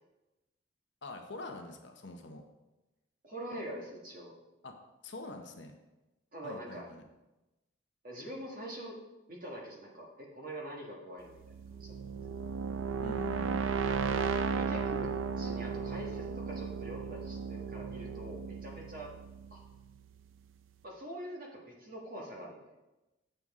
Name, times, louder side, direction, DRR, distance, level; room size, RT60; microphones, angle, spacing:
voice 1, 1.0-2.4 4.6-4.7 5.0-5.7 6.4-7.0 13.0-13.6, left 2 dB, 60° left, 5 dB, 0.8 m, -44 dB
voice 2, 3.2-4.4 6.3-6.9 8.0-9.0 9.3-11.9 12.4-12.5 14.0-15.1 15.4-19.1 19.5-19.6 20.8-22.6, equal, 45° right, -1 dB, 1.5 m, -44 dB
sound 1, 11.4-20.2, right 5 dB, 80° right, 0.5 m, -35 dB
7.4 x 6.8 x 3.6 m, 1.0 s
head